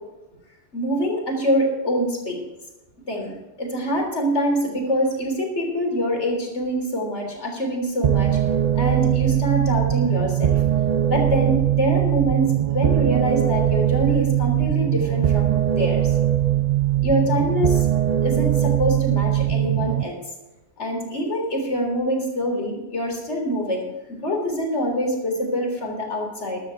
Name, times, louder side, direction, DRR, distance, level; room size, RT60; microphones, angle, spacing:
voice 1, 0.7-2.4 3.1-8.4 8.7-10.6 11.1-16.2 17.0-17.9 18.2-20.2 20.8-26.6, equal, 90° left, 2 dB, 3.8 m, -25 dB
sound 1, 8.0-20.0, right 11 dB, 50° right, 0.6 m, -21 dB
14.0 x 12.0 x 4.6 m, 1.0 s
omnidirectional pair, 1.1 m